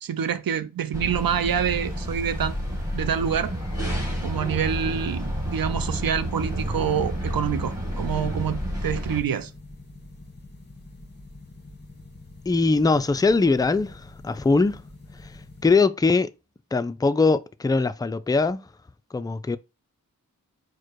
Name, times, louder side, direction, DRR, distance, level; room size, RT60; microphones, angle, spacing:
voice 1, 0.0-2.6 2.9-3.5 4.2-9.5, right 8 dB, 80° right, 0.5 m, -27 dB
sound 1, 0.9-9.2, equal, 10° right, 2.0 m, -30 dB
sound 2, 1.1-15.7, left 2 dB, 30° left, 1.6 m, -46 dB
voice 2, 12.5-14.8 15.6-16.3 16.7-18.6 19.1-19.6, left 3 dB, 10° left, 0.3 m, -21 dB
4.7 x 2.2 x 4.5 m
wide cardioid pair, 45°, 34 cm